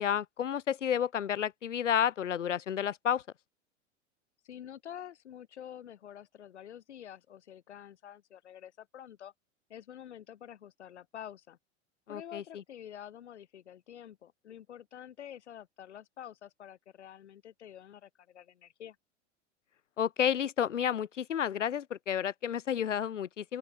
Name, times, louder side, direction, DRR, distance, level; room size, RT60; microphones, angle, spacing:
voice 1, 0.0-3.2 12.1-12.4 20.0-23.6, left 9 dB, 90° left, 0.6 m, -31 dB
voice 2, 4.4-9.3 9.7-11.6 12.1-19.0, left 10 dB, 70° left, 2.8 m, -48 dB
open air
figure-of-eight pair, 85°, 35 cm